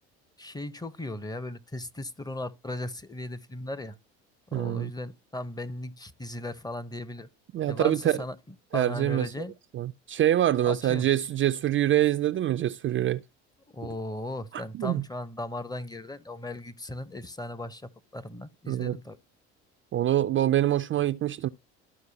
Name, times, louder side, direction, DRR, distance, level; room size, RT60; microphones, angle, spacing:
voice 1, 0.4-4.0 4.5-7.3 7.7-8.4 8.7-9.5 10.6-11.1 13.7-19.2, left 1 dB, 10° left, 0.7 m, -37 dB
voice 2, 4.5-4.9 7.5-8.2 8.7-9.3 9.7-13.2 14.5-15.0 18.7-19.0 19.9-21.5, right 12 dB, 35° right, 0.4 m, -25 dB
13.5 x 4.6 x 2.7 m
hypercardioid pair, 75°, 34 cm